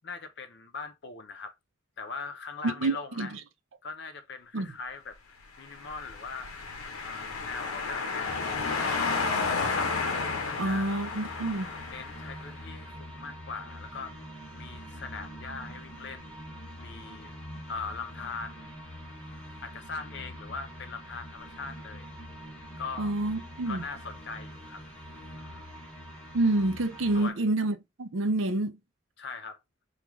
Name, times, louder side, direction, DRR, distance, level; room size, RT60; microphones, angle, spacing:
voice 1, 0.0-1.6 2.0-3.3 3.8-6.5 7.0-9.1 10.4-11.0 11.9-14.1 14.6-16.4 16.8-17.4 17.7-18.7 19.6-22.1 22.8-23.1 23.7-24.8 25.4-25.7 27.1-27.4 29.2-29.6, left 4 dB, 55° left, 0.6 m, -41 dB
voice 2, 2.6-3.4 4.5-4.7 10.6-11.7 23.0-23.8 26.3-28.8, right 2 dB, 70° right, 0.5 m, -28 dB
sound 1, 5.7-12.5, left 4 dB, 90° left, 0.8 m, -32 dB
sound 2, 8.3-27.3, equal, 10° left, 1.0 m, -44 dB
3.1 x 2.4 x 3.5 m
head